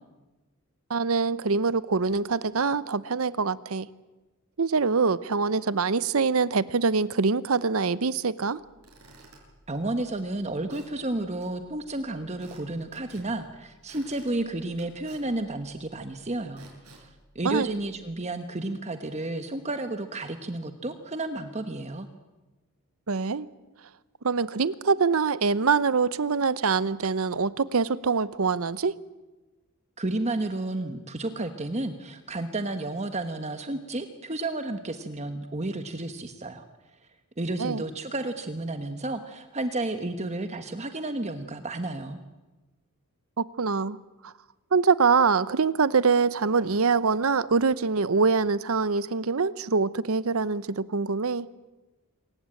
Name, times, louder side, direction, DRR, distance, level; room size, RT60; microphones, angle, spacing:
voice 1, 0.9-3.9 4.6-8.6 17.4-17.7 23.1-23.5 24.2-29.0 37.6-37.8 43.4-44.0 44.2-44.3 44.7-51.5, right 4 dB, 70° right, 17 dB, 0.8 m, -24 dB
Squeak / Wood, 8.6-18.2, right 2 dB, 90° right, 7.7 m, -55 dB
voice 2, 9.7-17.1 17.3-22.1 30.0-36.7 37.4-42.2, right 2 dB, 30° right, 8 dB, 1.2 m, -32 dB
26.5 x 15.5 x 9.0 m, 1.1 s
head